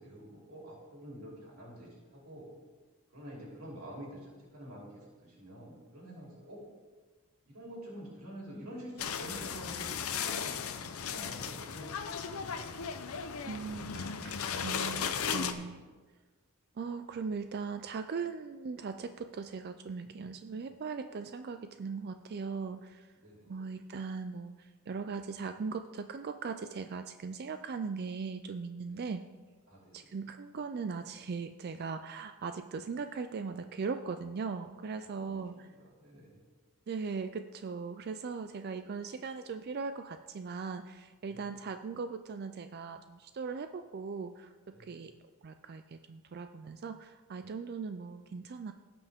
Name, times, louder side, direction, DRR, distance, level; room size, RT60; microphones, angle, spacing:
voice 1, 0.0-2.5 3.1-6.6 7.4-10.6 10.9-12.7 15.6-15.8 23.2-23.6 28.8-29.1 29.7-30.2 35.0-36.3 41.3-41.5 44.7-45.1, equal, 80° right, -4 dB, 3.4 m, -48 dB
sound 1, 9.0-15.5, left 7 dB, 85° left, 0.7 m, -36 dB
voice 2, 13.4-15.9 16.8-23.1 23.4-29.2 29.9-35.7 36.9-45.1 45.4-48.7, right 5 dB, 50° right, 9 dB, 0.4 m, -39 dB
17.0 x 5.9 x 3.6 m, 1.3 s
head